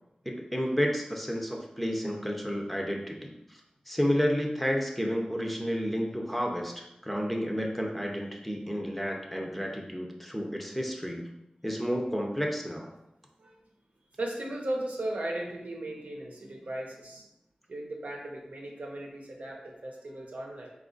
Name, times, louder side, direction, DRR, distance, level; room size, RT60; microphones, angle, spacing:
voice 1, 0.3-3.3 3.9-11.3 11.6-12.9, equal, 5° left, 1 dB, 0.6 m, -31 dB
voice 2, 14.2-17.3 17.7-20.7, right 1 dB, 80° right, -1 dB, 0.7 m, -37 dB
4.0 x 2.4 x 3.8 m, 0.86 s
wide cardioid pair, 65°, 3 cm